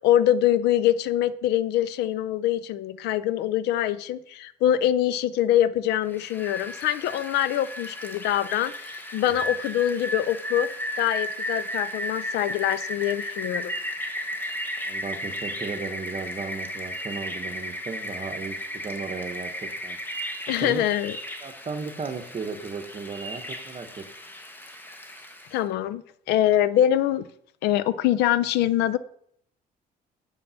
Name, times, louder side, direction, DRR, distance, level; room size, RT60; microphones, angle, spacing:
voice 1, 0.0-10.7 11.0-13.7 20.5-21.2 25.5-27.3 27.6-29.0, left 11 dB, 80° left, 17 dB, 0.5 m, -24 dB
Rain, 6.1-25.6, equal, 10° left, 1.0 m, -34 dB
voice 2, 14.8-18.6 18.8-20.0 20.6-20.9 21.4-24.0, right 5 dB, 35° right, 8 dB, 1.1 m, -35 dB
7.1 x 5.3 x 5.7 m, 0.68 s
cardioid pair, 110°, 17 cm